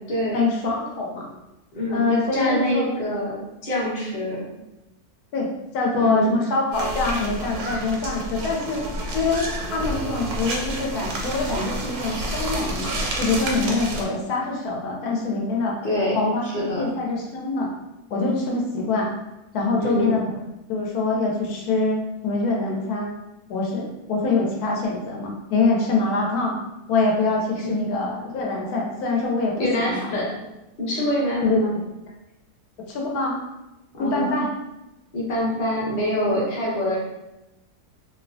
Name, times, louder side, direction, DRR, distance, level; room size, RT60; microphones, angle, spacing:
voice 1, 0.3-1.3 1.9-3.0 5.3-8.8 9.1-15.7 16.1-17.7 18.1-19.1 19.5-20.2 20.7-23.1 23.5-26.6 26.9-30.2 31.4-31.8 32.9-33.4 34.0-34.5, left 3 dB, 80° left, -1 dB, 1.1 m, -24 dB
voice 2, 1.7-4.4 6.0-6.4 15.8-16.1 16.4-16.8 19.8-20.2 27.6-27.7 29.6-30.3 30.8-31.7 33.9-34.3 35.1-37.0, equal, 35° left, -6 dB, 0.7 m, -25 dB
sound 1, 6.7-14.1, right 1 dB, 85° right, 1.1 m, -29 dB
2.7 x 2.0 x 2.5 m, 0.94 s
omnidirectional pair, 1.6 m